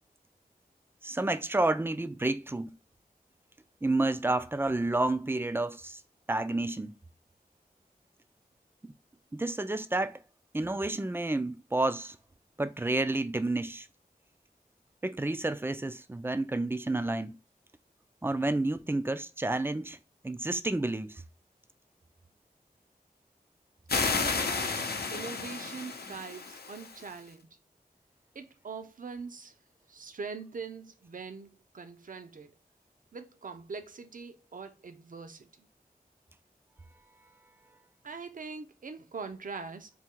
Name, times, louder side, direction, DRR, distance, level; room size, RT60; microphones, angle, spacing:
voice 1, 1.0-2.7 3.8-6.0 6.3-6.9 8.8-8.9 9.3-10.2 10.5-12.2 12.6-13.9 15.0-17.3 18.2-20.0 20.2-21.2, right 2 dB, 15° right, 0.3 m, -30 dB
sound 1, 23.9-27.2, left 4 dB, 85° left, 0.6 m, -32 dB
voice 2, 24.0-27.5 28.3-29.5 29.9-32.5 33.1-35.7 38.0-39.9, right 4 dB, 60° right, 0.6 m, -42 dB
3.6 x 2.2 x 4.4 m
wide cardioid pair, 85°, 16 cm